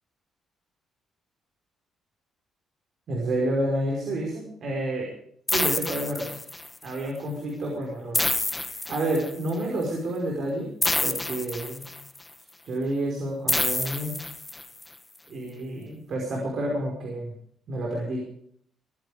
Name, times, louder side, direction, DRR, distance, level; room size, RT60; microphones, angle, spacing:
voice 1, 3.1-5.1 5.5-6.3 6.8-8.3 8.6-10.7 11.0-11.9 12.6-14.1 15.3-17.3 17.7-18.3, right 1 dB, 60° right, -1 dB, 5.4 m, -29 dB
sound 1, 5.5-6.8 8.1-9.5 10.8-12.2 13.5-14.8, left 2 dB, 15° left, 1.2 m, -28 dB
22.5 x 10.5 x 5.1 m, 0.65 s
cardioid pair, 90°, 0 cm